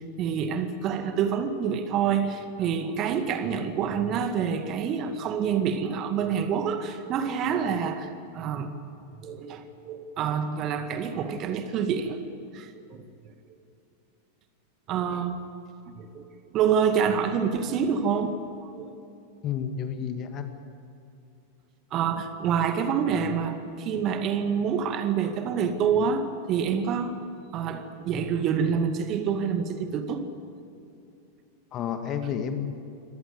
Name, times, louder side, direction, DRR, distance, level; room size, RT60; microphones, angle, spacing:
voice 1, 0.0-8.7 9.2-12.2 12.5-13.0 14.9-15.4 16.0-16.2 16.5-18.9 21.9-27.2 27.5-30.3, right 7 dB, 35° right, 8 dB, 2.0 m, -27 dB
voice 2, 19.4-20.5 31.7-32.9, left 8 dB, 35° left, 7 dB, 2.3 m, -31 dB
25.5 x 18.5 x 8.2 m, 2.7 s
figure-of-eight pair, 90°, 0 cm